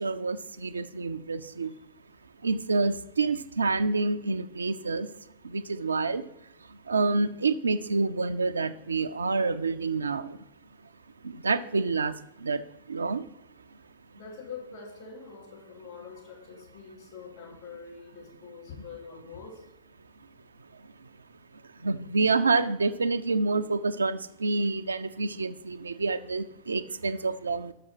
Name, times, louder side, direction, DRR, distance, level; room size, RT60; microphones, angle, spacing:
voice 1, 0.0-1.7 2.4-5.1 5.4-6.2 6.7-10.4 11.2-12.6 12.9-13.2 21.8-27.7, right 3 dB, 75° right, 11 dB, 0.3 m, -28 dB
voice 2, 14.2-19.6 27.0-27.2, left 5 dB, 50° left, 0 dB, 2.7 m, -44 dB
6.4 x 5.8 x 5.8 m, 0.81 s
figure-of-eight pair, 90°, 0 cm